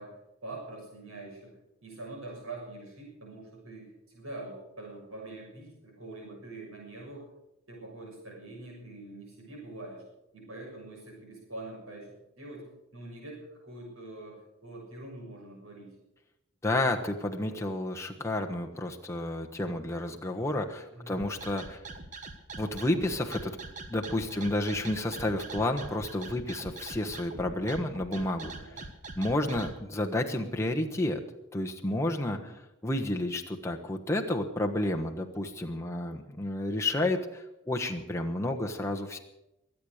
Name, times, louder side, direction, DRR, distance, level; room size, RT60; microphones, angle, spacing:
voice 1, 0.0-1.5 1.8-7.3 7.7-10.0 10.3-12.7 12.9-15.9 20.9-21.2 24.2-24.4 28.5-28.8 32.4-32.5, right 2 dB, 85° right, -1 dB, 6.6 m, -44 dB
voice 2, 16.6-21.8 22.6-23.6 23.9-28.5 29.2-31.2 31.5-39.2, left 1 dB, 15° left, 2 dB, 1.2 m, -31 dB
sound 1, 21.1-29.7, right 3 dB, 35° right, 1.3 m, -42 dB
22.5 x 8.6 x 6.6 m, 0.89 s
head